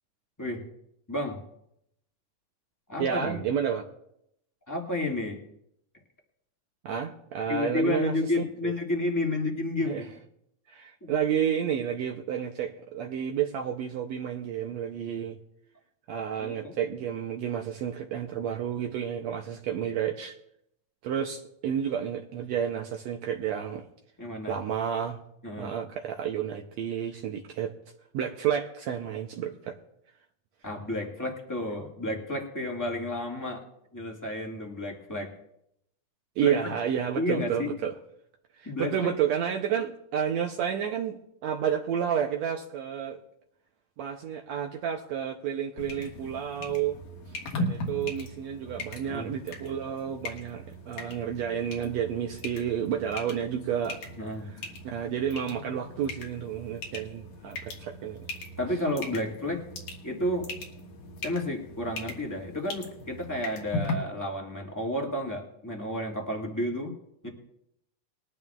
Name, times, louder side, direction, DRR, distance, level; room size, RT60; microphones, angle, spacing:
voice 1, 1.1-1.4 2.9-3.4 4.7-5.4 7.5-10.1 11.0-11.1 16.4-16.7 24.2-24.6 25.4-25.7 30.6-33.6 33.9-35.3 36.4-36.7 37.1-37.7 38.6-39.1 49.0-49.3 54.2-54.5 58.6-59.6 60.0-60.5 61.2-66.9 67.2-67.3, left 1 dB, 10° left, -1 dB, 1.2 m, -31 dB
voice 2, 3.0-3.8 6.8-8.1 8.6-8.7 9.9-10.0 10.7-15.4 16.1-20.4 21.0-23.9 24.5-25.2 25.6-27.7 28.1-29.8 36.4-37.9 38.5-43.2 44.0-47.0 47.5-54.0 54.5-54.6 54.9-58.2, right 8 dB, 75° right, 2 dB, 1.8 m, -30 dB
sound 1, 45.8-63.9, left 2 dB, 80° left, 3.3 m, -39 dB
21.0 x 12.5 x 2.4 m, 0.77 s
omnidirectional pair, 3.6 m